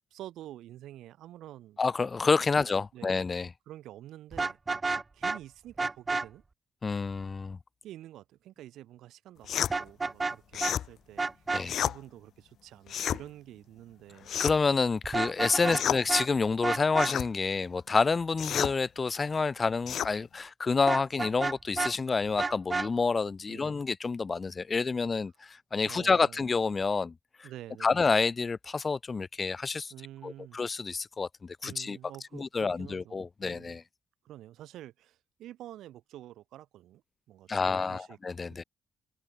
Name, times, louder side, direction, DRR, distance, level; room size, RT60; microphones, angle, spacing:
voice 1, 0.0-1.8 2.5-3.2 3.7-4.6 5.1-6.4 7.8-14.4 15.6-16.0 23.5-23.7 25.8-26.4 27.4-28.0 29.9-30.6 31.6-33.8 34.2-37.0 37.3-38.2, right 13 dB, 80° right, 1.7 m, -48 dB
voice 2, 1.8-3.5 6.8-7.6 11.5-11.8 14.4-27.1 27.4-27.5 27.8-29.9 30.2-32.0 32.3-33.8 37.5-38.6, left 4 dB, 30° left, 0.7 m, -28 dB
Vehicle horn car horn honking, 4.3-5.4 5.8-6.3 9.7-10.4 10.6-10.7 11.2-11.6 15.0-16.3 16.6-17.1 20.9-21.9 22.4-22.9, right 3 dB, 25° right, 0.6 m, -30 dB
sound 1, 9.5-9.7 10.5-10.9 11.6-12.0 12.9-13.2 14.3-14.7 15.7-16.0 17.0-17.3 18.4-18.7 19.9-20.1, left 10 dB, 65° left, 0.9 m, -30 dB
cardioid pair, 90°, 0 cm